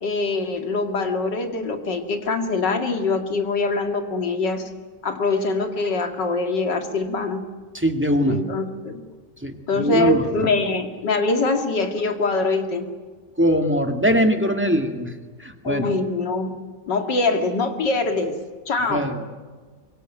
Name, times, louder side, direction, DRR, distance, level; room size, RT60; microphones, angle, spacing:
voice 1, 0.0-4.6 5.0-7.4 8.3-9.0 9.7-12.9 15.6-16.6 16.9-18.4 18.7-19.3, left 3 dB, 90° left, 5 dB, 2.9 m, -23 dB
voice 2, 7.7-8.4 9.4-10.5 13.4-15.1 15.4-15.9 18.9-19.3, equal, 5° right, 5 dB, 2.1 m, -21 dB
25.0 x 22.5 x 9.2 m, 1.4 s
omnidirectional pair, 1.8 m